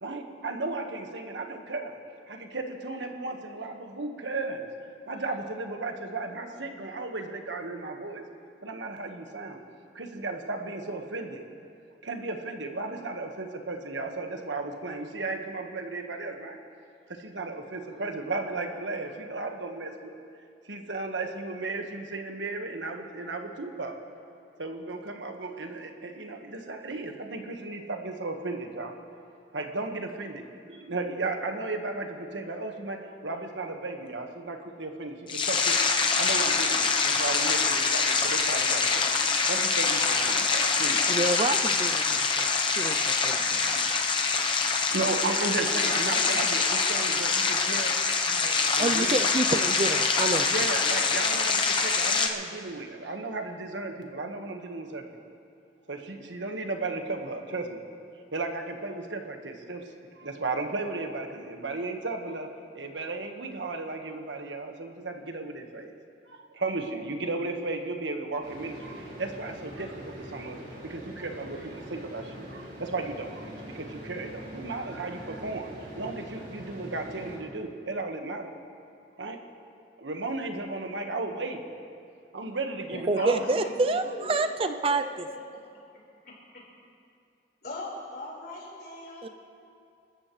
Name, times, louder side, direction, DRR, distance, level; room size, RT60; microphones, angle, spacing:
voice 1, 0.0-1.9 2.3-4.7 5.1-8.2 8.6-9.6 9.9-11.4 12.0-16.6 17.1-20.1 20.7-23.9 24.6-28.9 29.5-30.4 30.7-35.8 36.2-39.1 39.5-41.0 41.3-41.4 44.9-47.9 48.3-49.1 50.5-55.0 55.9-57.8 58.3-59.8 60.2-62.5 62.7-65.9 66.3-70.6 70.8-75.7 76.0-78.5 79.2-79.4 80.0-81.7 82.3-83.4, right 3 dB, 90° right, 4 dB, 1.5 m, -35 dB
sound 1, 35.3-52.3, left 4 dB, 25° left, 0.9 m, -25 dB
voice 2, 41.1-43.9 48.8-50.5 83.1-85.0 89.2-89.3, right 3 dB, 30° right, 8 dB, 0.4 m, -28 dB
sound 2, 68.4-77.4, right 1 dB, 70° right, 4.2 m, -43 dB
voice 3, 82.9-84.3 84.6-85.6 86.2-86.6 87.6-89.3, left 2 dB, 55° left, -4 dB, 4.7 m, -40 dB
27.5 x 14.0 x 3.2 m, 2.5 s
head